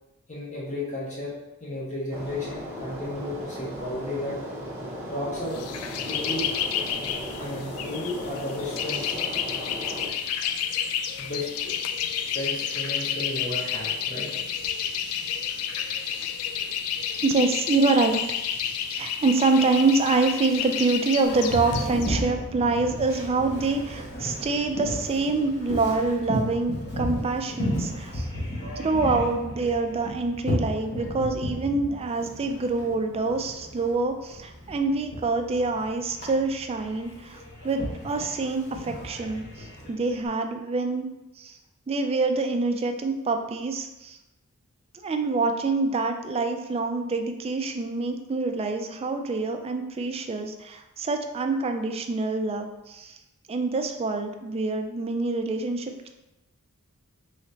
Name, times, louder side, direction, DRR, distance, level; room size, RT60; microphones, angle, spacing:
voice 1, 0.3-4.4 5.1-5.5 6.1-6.5 7.4-9.1 11.2-11.7 12.3-14.3, left 1 dB, 35° left, -6 dB, 0.8 m, -33 dB
sound 1, 2.1-10.1, equal, 10° right, 0.8 m, -37 dB
sound 2, 5.5-22.2, left 8 dB, 85° left, 0.3 m, -30 dB
voice 2, 17.2-18.2 18.9-28.3 28.8-41.1 41.4-41.5 41.9-44.2 45.0-53.2 53.5-56.1, right 3 dB, 25° right, 5 dB, 0.3 m, -26 dB
Boat Water vehicle, 21.2-40.3, equal, 50° left, 1.2 m, -34 dB
3.2 x 3.0 x 3.9 m, 0.97 s
head